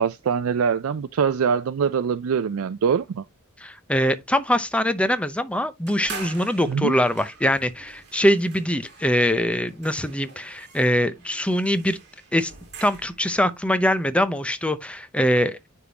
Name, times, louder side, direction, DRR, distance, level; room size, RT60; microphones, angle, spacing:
voice 1, 0.0-3.2 6.7-7.0, right 6 dB, 75° right, 0.4 m, -23 dB
voice 2, 3.6-12.0 12.3-12.5 12.8-15.6, equal, 5° left, 0.6 m, -23 dB
sound 1, 5.9-13.4, right 4 dB, 55° right, 2.2 m, -43 dB
9.8 x 3.6 x 2.8 m
head